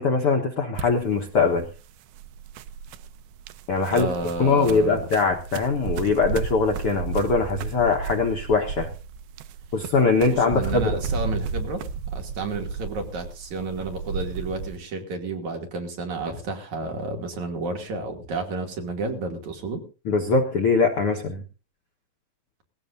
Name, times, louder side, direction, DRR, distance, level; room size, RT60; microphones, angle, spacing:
voice 1, 0.0-1.7 3.7-4.1 4.4-8.9 9.7-11.0 20.0-21.4, left 4 dB, 60° left, 3 dB, 1.6 m, -22 dB
sound 1, 0.7-14.8, right 6 dB, 85° right, 2.7 m, -33 dB
voice 2, 3.9-5.0 10.2-11.8 12.1-19.8, right 3 dB, 55° right, 3 dB, 3.8 m, -31 dB
19.5 x 16.5 x 2.6 m, 0.35 s
omnidirectional pair, 4.2 m